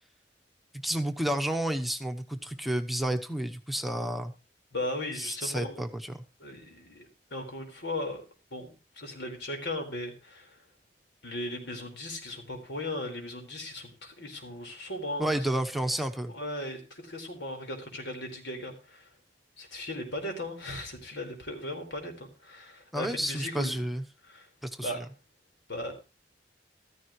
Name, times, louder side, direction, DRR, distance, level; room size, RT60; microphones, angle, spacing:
voice 1, 0.7-4.3 5.2-6.2 15.2-16.3 22.9-24.0 24.6-25.0, right 1 dB, ahead, 4 dB, 1.0 m, -31 dB
voice 2, 4.7-5.8 6.4-8.2 8.5-10.6 11.2-15.3 16.3-19.1 19.6-23.9 24.2-24.5 24.8-25.0 25.7-25.9, left 1 dB, 85° left, 3 dB, 4.6 m, -37 dB
14.5 x 14.0 x 3.2 m, 0.30 s
head